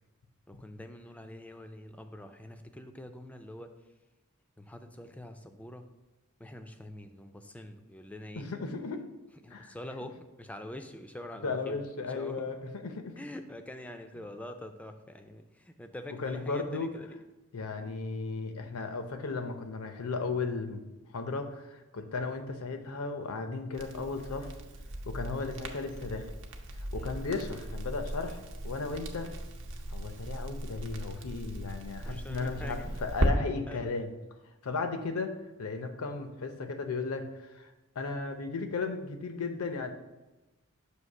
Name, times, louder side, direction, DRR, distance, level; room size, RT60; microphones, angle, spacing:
voice 1, 0.5-3.7 4.6-5.8 6.4-8.5 9.4-11.8 12.1-12.4 13.2-17.2 17.7-18.0 22.0-22.1 26.9-27.2 32.1-32.9 33.7-33.9, left 1 dB, 5° left, 7 dB, 0.3 m, -45 dB
voice 2, 8.3-9.0 9.5-9.8 11.4-13.1 16.2-16.9 17.5-20.8 21.1-24.5 25.1-26.3 26.9-29.3 29.9-34.1 34.6-35.3 35.6-37.7 38.0-39.9, left 4 dB, 80° left, 7 dB, 0.6 m, -35 dB
Crackle, 23.7-33.3, right 1 dB, 60° right, 0.7 m, -37 dB
6.4 x 2.8 x 5.4 m, 1.1 s
head